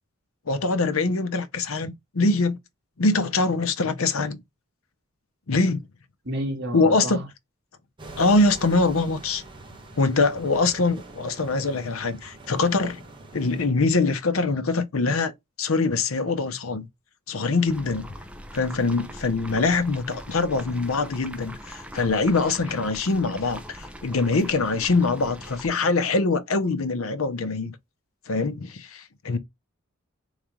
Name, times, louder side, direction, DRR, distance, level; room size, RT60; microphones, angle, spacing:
voice 1, 0.5-2.6 3.0-4.4 5.5-5.9 6.7-7.2 8.2-9.4 10.0-13.0 13.3-15.3 15.6-16.9 17.3-18.1 18.5-27.7 28.3-29.4, left 3 dB, 80° left, 0.7 m, -23 dB
voice 2, 6.2-7.2, equal, 55° right, 2.1 m, -30 dB
sound 1, 8.0-13.7, right 2 dB, 25° right, 1.1 m, -44 dB
sound 2, 17.7-25.7, equal, 5° right, 0.6 m, -41 dB
4.0 x 3.2 x 3.6 m
head